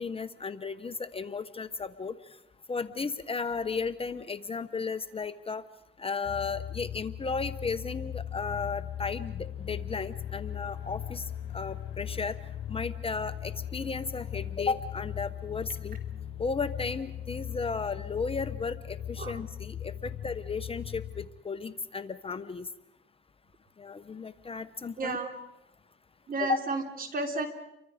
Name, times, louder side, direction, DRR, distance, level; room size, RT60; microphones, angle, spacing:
voice 1, 0.0-2.1 2.7-5.6 6.0-12.4 12.7-16.0 16.4-22.7 23.8-25.2 26.4-26.6, left 4 dB, 30° left, 12 dB, 1.0 m, -34 dB
sound 1, 6.2-21.3, left 10 dB, 65° left, 3.5 m, -39 dB
voice 2, 25.0-25.3 26.3-27.5, right 3 dB, 45° right, 5 dB, 3.3 m, -32 dB
30.0 x 24.0 x 5.1 m, 0.90 s
cardioid pair, 90°, 20 cm